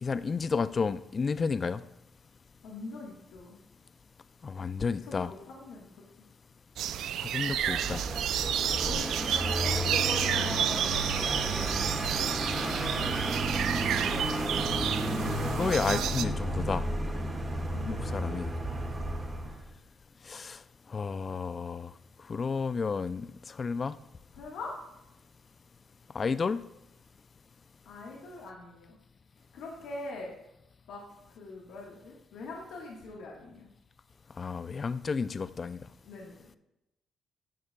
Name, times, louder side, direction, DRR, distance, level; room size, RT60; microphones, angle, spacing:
voice 1, 0.0-1.8 4.4-5.3 7.2-8.0 15.3-16.8 17.8-18.5 20.3-20.6 20.9-21.9 22.3-24.0 26.1-26.6 34.4-35.8, left 5 dB, 40° left, 14 dB, 0.3 m, -31 dB
voice 2, 2.6-3.6 4.9-5.9 8.8-14.3 17.0-17.2 17.7-18.4 24.3-24.7 27.8-29.0 29.5-30.3 30.9-31.0 31.4-33.7 36.0-36.6, left 3 dB, 85° left, -2 dB, 1.3 m, -44 dB
sound 1, 6.8-16.2, right 10 dB, 80° right, 0.3 m, -31 dB
Vehicle, 7.4-19.7, right 1 dB, 25° right, 1.6 m, -32 dB
10.5 x 7.3 x 2.2 m, 0.90 s
cardioid pair, 90°, 0 cm